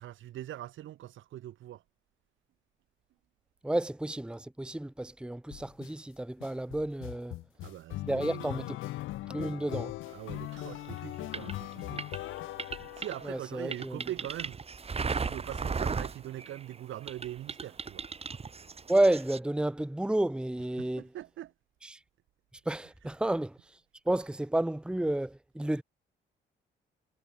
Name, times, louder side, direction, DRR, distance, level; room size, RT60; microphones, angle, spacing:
voice 1, 0.0-1.8 7.6-8.6 10.1-12.0 12.8-14.6 15.1-18.0 20.8-21.5, right 13 dB, 80° right, 2.6 m, -42 dB
voice 2, 3.6-7.4 8.0-8.8 9.3-9.9 13.2-14.0 18.9-21.1 21.8-22.0 22.7-23.6 24.1-25.8, right 1 dB, 5° right, 1.0 m, -31 dB
sound 1, 5.5-5.9 6.4-13.6, left 16 dB, 80° left, 0.7 m, -40 dB
sound 2, 10.6-16.8 17.1-19.4, right 5 dB, 30° right, 1.8 m, -36 dB
cardioid pair, 90°, 20 cm